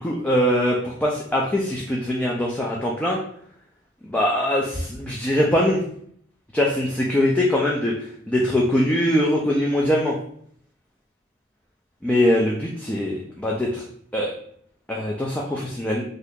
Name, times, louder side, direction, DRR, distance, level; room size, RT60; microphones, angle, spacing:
voice 1, 0.0-3.2 4.0-5.8 6.5-7.9 8.3-10.2 12.0-13.8 14.1-14.3 14.9-16.0, left 1 dB, 5° left, -3 dB, 0.3 m, -22 dB
2.7 x 2.4 x 3.5 m, 0.64 s
head